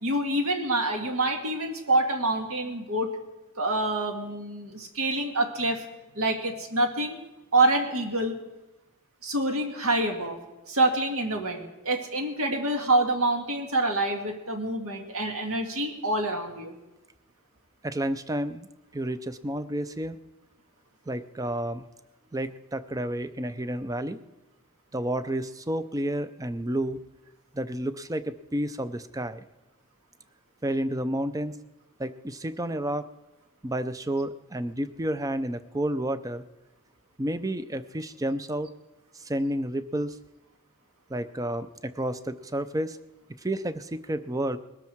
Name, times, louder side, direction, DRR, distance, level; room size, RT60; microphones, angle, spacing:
voice 1, 0.0-3.1 3.6-5.8 6.2-7.2 7.5-8.4 9.2-10.4 10.7-16.8, right 2 dB, 70° right, 4 dB, 1.9 m, -26 dB
voice 2, 17.8-18.7 18.9-20.2 21.1-21.8 22.3-24.2 24.9-27.0 27.5-29.5 30.6-31.6 32.0-33.0 33.6-36.4 37.2-38.7 39.1-40.2 41.1-43.0 43.4-44.6, right 1 dB, 15° right, 12 dB, 0.5 m, -30 dB
20.5 x 13.0 x 4.6 m, 1.0 s
head